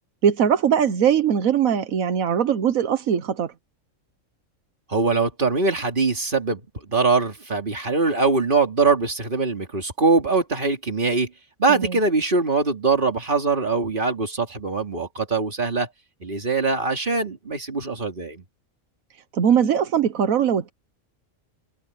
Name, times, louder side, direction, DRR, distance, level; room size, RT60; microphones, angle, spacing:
voice 1, 0.2-3.5 11.7-12.0 19.3-20.7, right 8 dB, 85° right, 1.4 m, -21 dB
voice 2, 4.9-11.3 11.6-15.9 16.2-18.4, right 4 dB, 40° right, 2.8 m, -22 dB
omnidirectional pair, 1.4 m